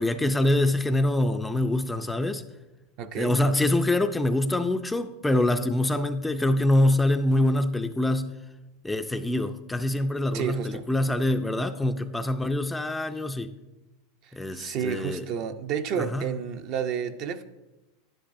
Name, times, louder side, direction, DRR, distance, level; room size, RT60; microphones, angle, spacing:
voice 1, 0.0-2.4 3.1-8.3 8.8-13.5 14.3-15.3 16.0-16.2, left 1 dB, 5° left, 7 dB, 0.4 m, -25 dB
voice 2, 3.0-3.4 10.3-10.8 14.2-17.4, right 7 dB, 45° right, 9 dB, 0.6 m, -31 dB
11.0 x 10.0 x 2.6 m, 1.1 s
supercardioid pair, 145°, 0 cm